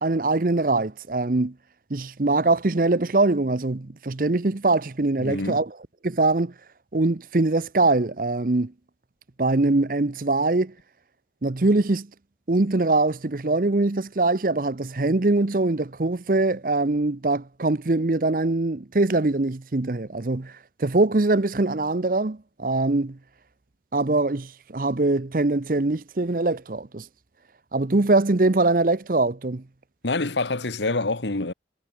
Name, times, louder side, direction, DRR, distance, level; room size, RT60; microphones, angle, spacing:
voice 1, 0.0-1.5 1.9-5.7 6.0-6.5 6.9-8.7 9.4-10.7 11.4-12.1 12.5-20.5 20.8-23.2 23.9-27.1 27.7-29.6, right 2 dB, 50° right, 0.8 m, -22 dB
voice 2, 5.2-5.6 30.0-31.5, left 2 dB, 85° left, 1.6 m, -26 dB
head